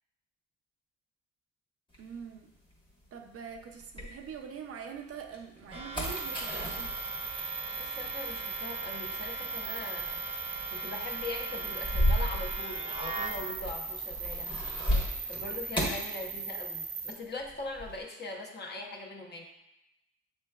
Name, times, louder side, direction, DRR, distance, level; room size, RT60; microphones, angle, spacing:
sound 1, 1.9-4.7 5.2-16.9 17.2-18.0, equal, 15° left, 1.3 m, -36 dB
voice 1, 2.0-2.5 3.1-7.0, right 7 dB, 50° right, 4 dB, 0.5 m, -44 dB
sound 2, 5.7-13.3, right 3 dB, 20° right, 0.9 m, -41 dB
sound 3, 6.0-17.1, right 5 dB, 75° right, 0.9 m, -39 dB
voice 2, 7.8-10.2 10.7-14.5 15.3-19.4, left 2 dB, 35° left, 0 dB, 0.9 m, -41 dB
7.4 x 3.1 x 2.3 m, 0.90 s
cardioid pair, 90°, 30 cm